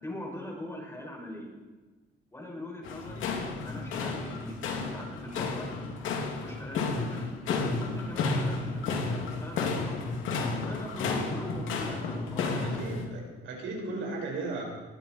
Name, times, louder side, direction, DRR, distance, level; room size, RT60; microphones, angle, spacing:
voice 1, 0.0-1.5 2.3-3.3 3.7-5.7 6.4-7.2 7.8-10.0 10.7-12.8, left 1 dB, 15° left, -2 dB, 5.9 m, -41 dB
sound 1, 2.8-13.0, left 3 dB, 85° left, 2.7 m, -32 dB
voice 2, 12.6-14.7, right 3 dB, 80° right, -1 dB, 5.6 m, -36 dB
21.5 x 10.5 x 4.6 m, 1.2 s
cardioid pair, 90°, 20 cm